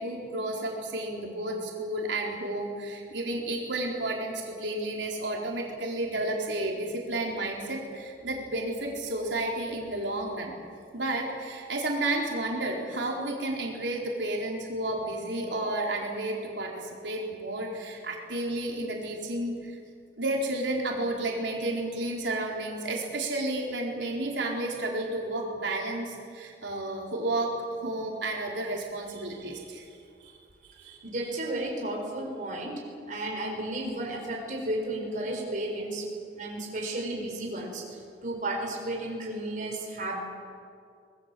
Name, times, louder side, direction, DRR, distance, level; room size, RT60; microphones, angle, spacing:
voice 1, 0.0-10.5 10.9-19.8 20.2-29.8 30.2-30.4 30.8-31.0, right 1 dB, 90° right, -1 dB, 4.1 m, -32 dB
voice 2, 31.0-32.8 33.1-36.1 36.4-40.2, right 1 dB, 45° right, 0 dB, 4.7 m, -33 dB
24.5 x 20.5 x 7.6 m, 2.3 s
head